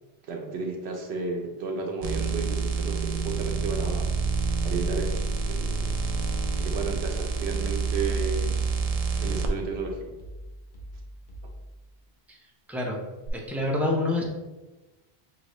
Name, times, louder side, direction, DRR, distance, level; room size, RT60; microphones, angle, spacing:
voice 1, 0.2-4.1 4.6-6.0 6.6-8.6 9.2-10.2, right 4 dB, 80° right, 1 dB, 1.0 m, -33 dB
sound 1, 2.0-9.5 13.2-13.3, right 4 dB, 55° right, 0.4 m, -28 dB
sound 2, 9.6-11.8, equal, 50° left, 1.0 m, -43 dB
voice 2, 12.7-13.0 13.3-14.2, left 2 dB, ahead, -1 dB, 0.6 m, -27 dB
6.2 x 2.7 x 3.0 m, 1.1 s
omnidirectional pair, 1.1 m